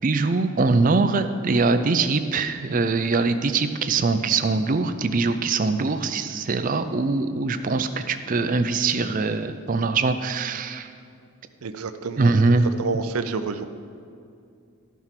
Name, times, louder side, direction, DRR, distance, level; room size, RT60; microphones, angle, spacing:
voice 1, 0.0-10.9 12.2-12.7, right 3 dB, 40° right, 9 dB, 0.4 m, -22 dB
voice 2, 11.6-13.6, right 4 dB, 85° right, 10 dB, 0.6 m, -29 dB
13.0 x 4.6 x 5.7 m, 2.5 s
head